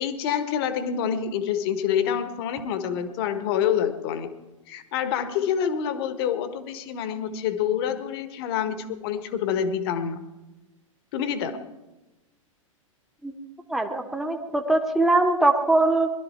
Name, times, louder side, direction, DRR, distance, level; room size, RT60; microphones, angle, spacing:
voice 1, 0.0-4.3 4.7-10.3 11.1-11.6, left 8 dB, 45° left, 10 dB, 1.5 m, -27 dB
voice 2, 13.7-16.1, right 2 dB, ahead, 3 dB, 1.2 m, -22 dB
21.5 x 12.0 x 4.5 m, 1.1 s
figure-of-eight pair, 105°, 17 cm